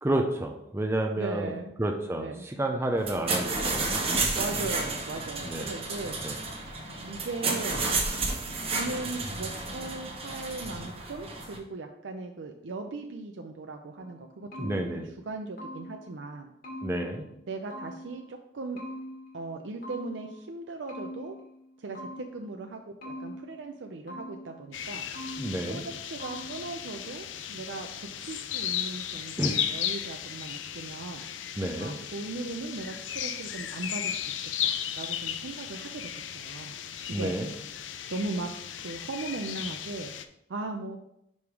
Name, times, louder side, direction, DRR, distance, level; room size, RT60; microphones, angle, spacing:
voice 1, 0.0-1.5 1.8-4.0 5.4-5.7 6.2-6.4 14.6-15.1 16.8-17.3 25.4-25.8 29.4-29.7 31.6-31.9 37.1-37.5, right 1 dB, 15° right, 3 dB, 0.5 m, -30 dB
voice 2, 1.2-1.7 2.2-2.5 4.3-6.2 6.8-7.8 8.7-15.0 15.3-16.5 17.5-18.8 19.3-21.4 21.8-25.1 25.7-31.2 31.8-34.3 34.6-36.8 37.1-37.3 38.1-38.5 38.8-40.1 40.5-41.0, right 3 dB, 80° right, 4 dB, 0.5 m, -38 dB
sound 1, 3.0-11.6, right 3 dB, 30° right, 1.0 m, -31 dB
sound 2, 14.0-16.2 16.6-18.3 18.8-20.4 20.9-22.5 23.0-24.6 25.1-25.9 26.2-26.8, equal, 50° left, 1.6 m, -43 dB
sound 3, 24.7-40.3, left 9 dB, 85° left, 0.5 m, -35 dB
5.4 x 4.9 x 4.7 m, 0.77 s
head